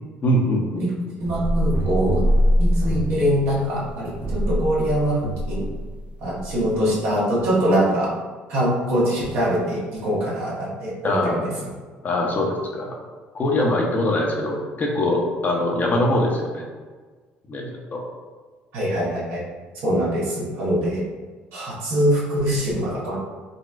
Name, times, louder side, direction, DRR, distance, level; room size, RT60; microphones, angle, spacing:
voice 1, 0.2-0.9 11.0-11.5 12.0-12.9 13.3-16.7 17.5-18.0, left 1 dB, 40° left, 0 dB, 0.7 m, -23 dB
voice 2, 0.8-2.2 2.6-5.7 6.2-8.1 8.5-11.5 18.7-19.4 19.8-21.0 21.5-23.2, equal, 65° right, -6 dB, 1.1 m, -23 dB
sound 1, 1.2-6.8, equal, 25° right, 0.4 m, -23 dB
3.9 x 2.1 x 2.5 m, 1.4 s
hypercardioid pair, 60°, 5 cm